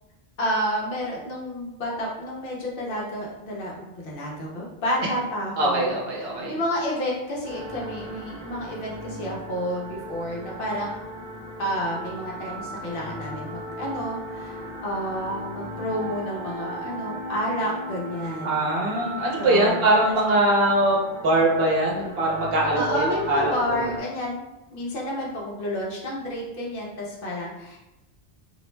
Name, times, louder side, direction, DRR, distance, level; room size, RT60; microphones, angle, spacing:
voice 1, 0.4-11.0 11.6-18.6 19.4-20.0 22.7-24.5 24.7-27.8, equal, 60° left, -3 dB, 0.8 m, -30 dB
voice 2, 5.6-6.6 18.4-21.0 21.2-23.5, right 1 dB, 70° right, -3 dB, 0.9 m, -22 dB
sound 1, 7.4-24.0, right 1 dB, 45° right, 0.3 m, -37 dB
2.5 x 2.0 x 3.0 m, 0.97 s
omnidirectional pair, 1.1 m